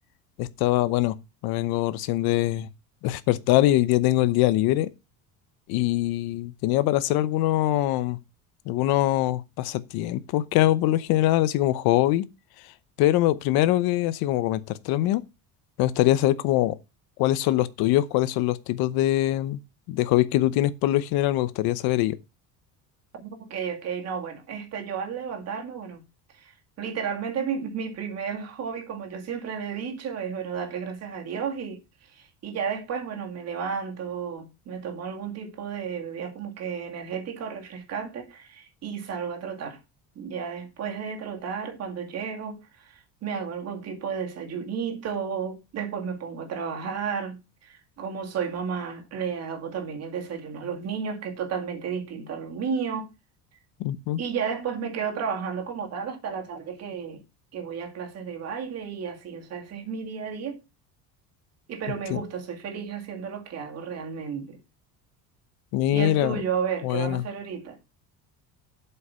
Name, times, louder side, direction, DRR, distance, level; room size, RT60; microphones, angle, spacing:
voice 1, 0.4-1.2 1.4-2.7 3.0-4.9 5.7-8.2 8.7-12.3 13.0-15.2 15.8-16.8 17.2-19.6 19.9-22.2 53.8-54.2 62.1-62.2 65.7-66.4 66.8-67.2, left 15 dB, 75° left, 0.9 m, -23 dB
voice 2, 23.1-26.0 26.3-39.8 40.2-53.1 54.2-57.2 57.5-60.6 61.7-64.6 65.9-67.8, right 6 dB, 40° right, 2.2 m, -33 dB
8.0 x 5.6 x 5.6 m
cardioid pair, 155°, 37 cm